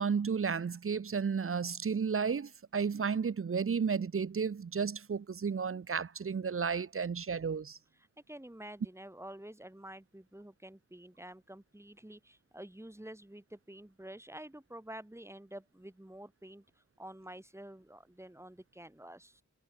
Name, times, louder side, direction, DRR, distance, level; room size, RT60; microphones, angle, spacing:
voice 1, 0.0-7.8, right 6 dB, 45° right, 0.7 m, -33 dB
voice 2, 8.3-19.4, right 1 dB, 10° right, 2.1 m, -49 dB
wide cardioid pair, 65°, 30 cm